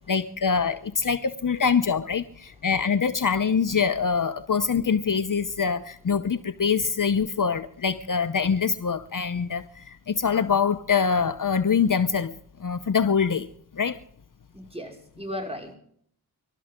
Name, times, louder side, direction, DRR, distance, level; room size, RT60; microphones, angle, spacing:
voice 1, 0.1-12.3 12.6-13.5 13.7-14.0, left 6 dB, 55° left, 0.8 m, -24 dB
voice 2, 14.5-15.8, equal, 15° right, 5.3 m, -36 dB
25.0 x 12.5 x 3.7 m
wide cardioid pair, 70°, 39 cm